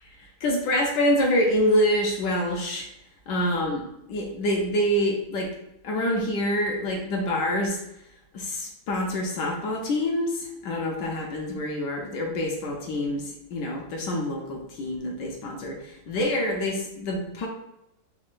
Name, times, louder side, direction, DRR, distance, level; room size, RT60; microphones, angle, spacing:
voice 1, 0.2-2.8 3.3-5.5 5.8-7.8 8.3-17.5, left 1 dB, 70° left, 0 dB, 1.1 m, -26 dB
4.3 x 3.0 x 2.4 m, 0.85 s
omnidirectional pair, 2.3 m